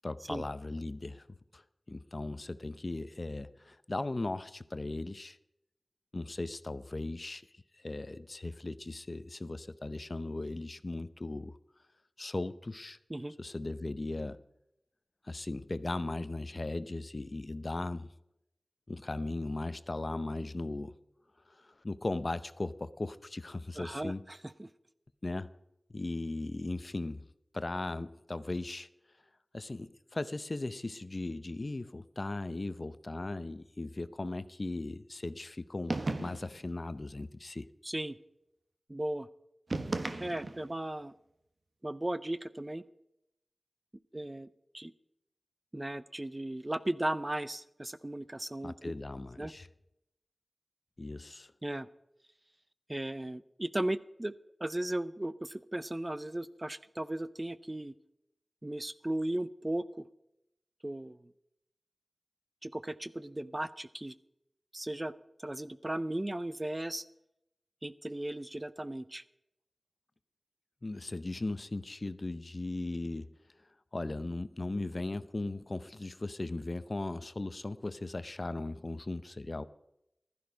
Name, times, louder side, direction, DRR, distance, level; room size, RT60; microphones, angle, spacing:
voice 1, 0.0-1.3 1.5-1.6 1.9-5.4 6.1-11.6 12.2-13.0 13.4-14.4 15.2-18.1 18.9-21.0 21.5-24.2 25.2-25.5 25.9-27.2 27.5-28.9 29.5-37.7 48.6-49.7 51.0-51.5 70.8-73.3 73.9-79.7, left 2 dB, 45° left, 13 dB, 0.7 m, -38 dB
voice 2, 23.8-24.7 37.8-38.2 38.9-39.3 40.2-41.1 41.8-42.8 44.1-44.5 44.7-44.9 45.7-48.9 49.4-49.5 51.6-51.9 52.9-54.3 54.6-57.9 58.6-60.1 60.8-61.2 62.6-64.1 64.7-65.1 65.4-67.0 67.8-69.2, right 1 dB, 25° right, 15 dB, 0.6 m, -36 dB
sound 1, 35.9-36.6 39.7-40.7, right 2 dB, 60° right, 1.2 m, -35 dB
15.0 x 12.5 x 5.2 m, 0.84 s
wide cardioid pair, 70°, 0 cm